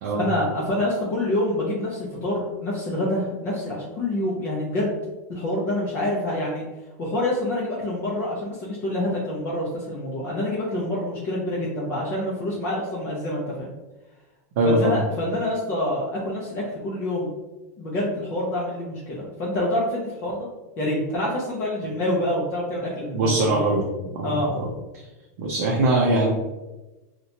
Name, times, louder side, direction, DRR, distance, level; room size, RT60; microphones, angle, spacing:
voice 1, 0.1-5.0 5.3-6.6 7.0-13.7 14.6-17.3 17.8-20.5 20.8-23.6 24.2-24.5, left 1 dB, 25° left, -6 dB, 0.4 m, -27 dB
voice 2, 14.6-14.9 23.1-23.8 24.1-24.7 25.4-26.3, right 2 dB, 55° right, -3 dB, 0.5 m, -21 dB
2.8 x 2.1 x 2.6 m, 1.1 s
supercardioid pair, 175°, 9 cm